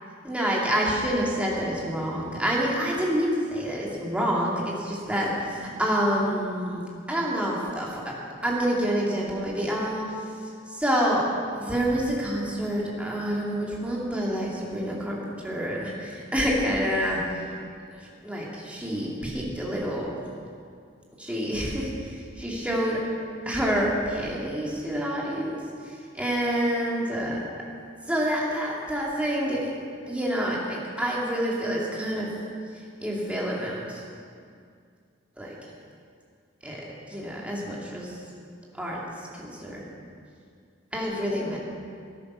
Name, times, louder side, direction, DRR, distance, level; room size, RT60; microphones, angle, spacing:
voice 1, 0.2-5.4 5.8-6.8 7.1-8.1 8.4-10.0 10.7-11.3 11.6-17.2 18.2-20.2 21.2-21.9 22.4-23.0 23.5-25.6 26.1-27.4 28.1-29.7 30.1-32.3 33.0-34.0 35.4-35.5 36.6-36.8 37.1-38.1 38.8-39.0 39.4-39.8 40.9-41.6, equal, 5° right, -4 dB, 2.3 m, -27 dB
13.0 x 10.5 x 6.2 m, 2.2 s
head